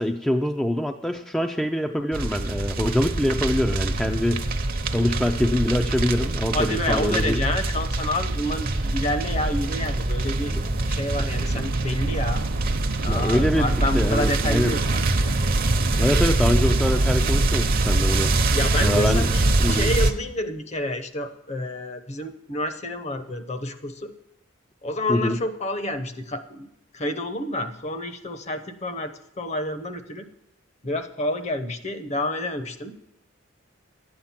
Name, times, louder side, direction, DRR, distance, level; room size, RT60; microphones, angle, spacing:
voice 1, 0.0-4.4 4.9-7.4 10.5-10.6 13.1-14.8 16.0-18.3 18.8-19.3 19.6-19.9 25.1-25.4, left 1 dB, 5° left, 4 dB, 0.4 m, -24 dB
sound 1, 2.1-20.1, right 2 dB, 50° right, 0.8 m, -24 dB
voice 2, 6.5-10.5 10.9-12.4 13.0-15.4 18.5-24.1 24.8-26.7 26.9-30.2 30.8-32.9, left 1 dB, 35° left, 10 dB, 0.8 m, -29 dB
sound 2, 11.3-20.0, right 5 dB, 70° right, 0.3 m, -36 dB
12.0 x 8.8 x 5.8 m, 0.80 s
head